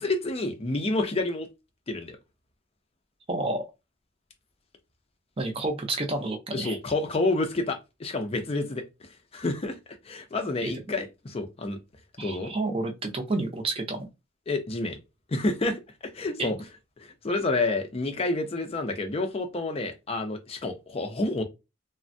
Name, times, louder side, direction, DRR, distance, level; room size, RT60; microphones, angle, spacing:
voice 1, 0.0-1.5 1.9-2.2 6.5-9.8 10.0-11.8 12.2-12.5 14.5-15.0 15.3-15.8 16.1-16.6 17.0-21.4, left 2 dB, 30° left, 0.4 m, -29 dB
voice 2, 3.3-3.6 5.4-6.8 10.6-10.7 12.2-14.1 16.4-16.6, right 2 dB, 30° right, 0.5 m, -30 dB
3.2 x 2.0 x 2.6 m
head